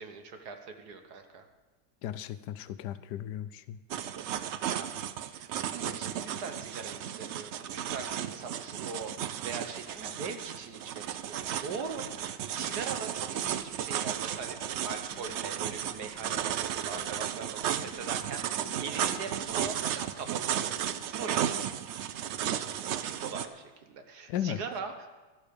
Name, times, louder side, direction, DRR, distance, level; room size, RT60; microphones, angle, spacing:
voice 1, 0.0-1.5 4.7-4.9 5.2-20.8 21.1-21.7 22.4-25.1, right 5 dB, 70° right, 6 dB, 1.6 m, -41 dB
voice 2, 2.0-3.8 24.3-24.6, left 11 dB, 80° left, 13 dB, 1.2 m, -35 dB
sound 1, 3.9-23.5, right 10 dB, 85° right, 0.6 m, -34 dB
sound 2, 9.7-20.2, left 1 dB, 10° left, 1.7 m, -57 dB
13.0 x 11.5 x 5.2 m, 1.2 s
omnidirectional pair, 1.8 m